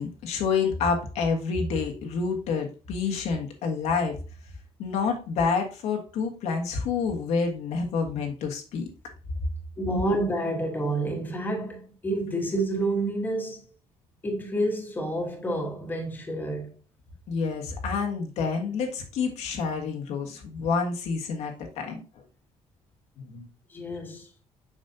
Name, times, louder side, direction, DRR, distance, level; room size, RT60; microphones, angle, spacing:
voice 1, 0.0-4.2 4.8-8.9 17.3-22.0 23.2-23.5, left 5 dB, 70° left, 1.5 m, -28 dB
voice 2, 9.8-13.6 14.2-16.8 23.7-24.3, right 1 dB, 15° left, 1.4 m, -29 dB
7.3 x 5.3 x 2.7 m
cardioid pair, 165°, 12 cm